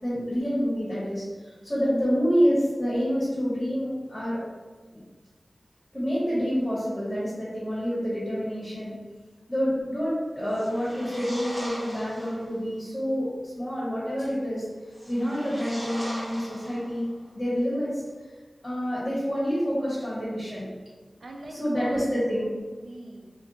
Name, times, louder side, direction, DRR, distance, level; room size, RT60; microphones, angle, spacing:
voice 1, 0.0-4.4 4.9-5.0 5.9-9.0 9.5-13.3 13.6-14.6 15.1-17.0 17.3-18.0 18.6-20.6 21.6-22.4, equal, 25° left, -10 dB, 1.2 m, -27 dB
sound 1, 10.4-12.5 14.9-17.2, equal, 5° right, 0.9 m, -40 dB
voice 2, 15.2-15.6 21.2-22.2 22.5-23.3, right 1 dB, 80° right, 1 dB, 0.4 m, -42 dB
2.5 x 2.2 x 3.9 m, 1.3 s
wide cardioid pair, 80°, 0 cm